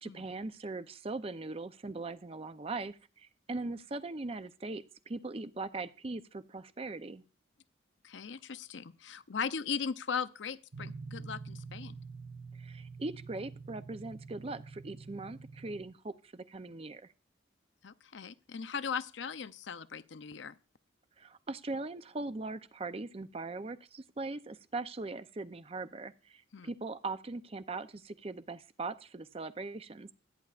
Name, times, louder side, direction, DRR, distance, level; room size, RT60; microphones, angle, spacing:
voice 1, 0.0-7.2 12.5-17.1 21.2-30.1, right 3 dB, 30° right, 0.5 m, -40 dB
voice 2, 8.0-11.9 17.8-20.5 26.5-26.7, left 6 dB, 70° left, 0.6 m, -38 dB
sound 1, 10.7-15.8, right 4 dB, 50° right, 1.0 m, -46 dB
25.5 x 9.6 x 2.5 m
head